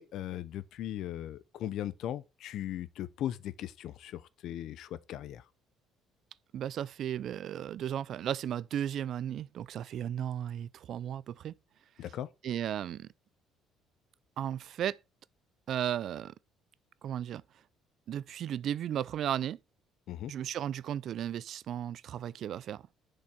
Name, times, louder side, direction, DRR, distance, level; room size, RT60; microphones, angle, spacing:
voice 1, 0.0-5.4 12.0-12.3 20.1-20.3, left 12 dB, 65° left, 0.6 m, -38 dB
voice 2, 6.5-11.5 12.4-13.1 14.4-15.0 15.7-16.3 17.0-17.4 18.1-19.6 20.3-22.8, right 10 dB, 60° right, 0.4 m, -35 dB
6.9 x 5.2 x 4.3 m
cardioid pair, 100°, 0 cm